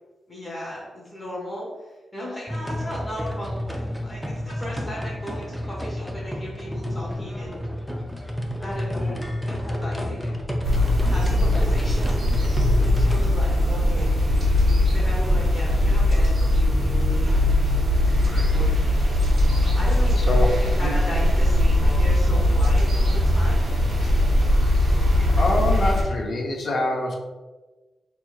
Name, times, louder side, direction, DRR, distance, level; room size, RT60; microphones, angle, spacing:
voice 1, 0.3-7.7 8.6-10.6 11.0-14.1 14.9-17.8 18.5-19.1 19.7-23.6, left 1 dB, 15° left, -7 dB, 1.1 m, -36 dB
sound 1, 2.5-13.3, equal, ahead, 0.4 m, -30 dB
sound 2, 10.6-26.0, left 1 dB, 50° right, 1.0 m, -20 dB
voice 2, 20.3-20.9 25.4-27.2, left 1 dB, 50° left, 1 dB, 0.6 m, -25 dB
4.5 x 3.0 x 2.3 m, 1.2 s
wide cardioid pair, 145°, 0 cm